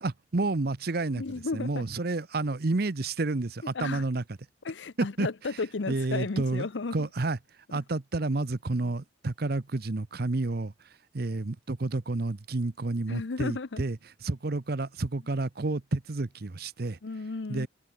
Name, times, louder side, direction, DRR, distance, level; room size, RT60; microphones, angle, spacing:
voice 1, 0.0-4.2 5.0-5.3 5.9-6.7 6.9-7.4 7.7-10.7 11.1-14.0 14.2-17.0 17.5-17.7, right 2 dB, 55° right, 0.8 m, -30 dB
voice 2, 1.1-1.9 3.7-4.0 4.6-7.1 13.1-13.8 17.0-17.7, left 3 dB, 75° left, 0.7 m, -34 dB
open air
head